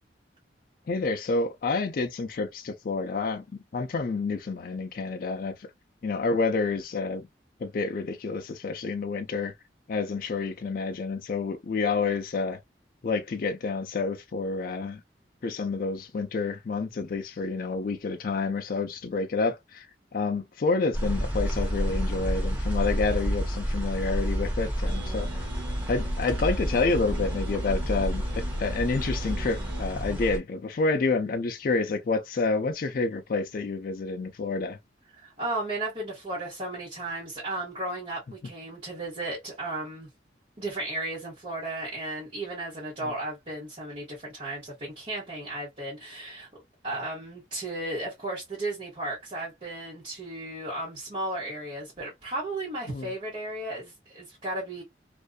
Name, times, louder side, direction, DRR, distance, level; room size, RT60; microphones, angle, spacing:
voice 1, 0.9-5.6 6.0-7.3 7.6-9.5 9.9-12.6 13.0-15.0 15.4-19.9 20.1-25.3 25.9-34.8 43.0-43.1 52.9-53.1, left 3 dB, 50° left, 0.4 m, -29 dB
sound 1, 20.9-30.4, equal, 10° right, 0.8 m, -29 dB
sound 2, 24.8-29.8, left 1 dB, 70° right, 1.1 m, -40 dB
voice 2, 35.2-40.1 40.6-54.8, right 2 dB, 35° right, 1.0 m, -35 dB
2.5 x 2.2 x 2.2 m
head